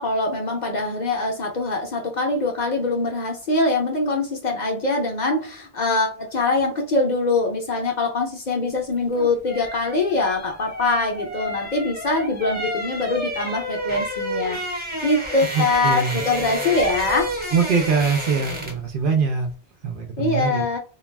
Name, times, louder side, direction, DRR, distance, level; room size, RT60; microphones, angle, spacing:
voice 1, 0.0-17.3 20.2-20.8, left 2 dB, 50° left, 1 dB, 0.7 m, -23 dB
sound 1, 8.9-18.9 19.2-19.4, equal, 10° right, 0.7 m, -31 dB
voice 2, 15.5-16.2 17.5-19.5 19.8-20.6, right 5 dB, 60° right, 4 dB, 0.7 m, -23 dB
2.3 x 2.2 x 3.2 m, 0.34 s
omnidirectional pair, 1.1 m